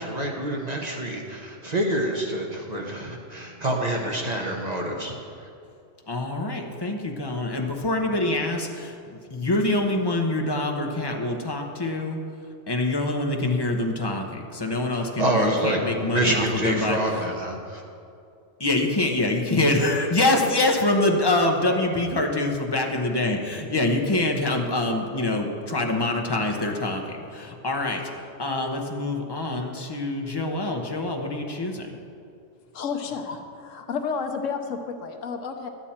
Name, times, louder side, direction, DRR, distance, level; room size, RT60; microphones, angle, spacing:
voice 1, 0.0-5.1 5.4-5.5 15.0-17.8, right 1 dB, 35° right, 0 dB, 1.0 m, -27 dB
voice 2, 6.1-12.2 12.7-17.0 18.6-27.0 27.3-28.0 28.4-31.9, left 2 dB, 20° left, 2 dB, 0.8 m, -25 dB
voice 3, 32.7-35.7, left 5 dB, 80° left, 5 dB, 1.2 m, -31 dB
11.5 x 9.0 x 4.3 m, 2.4 s
omnidirectional pair, 1.3 m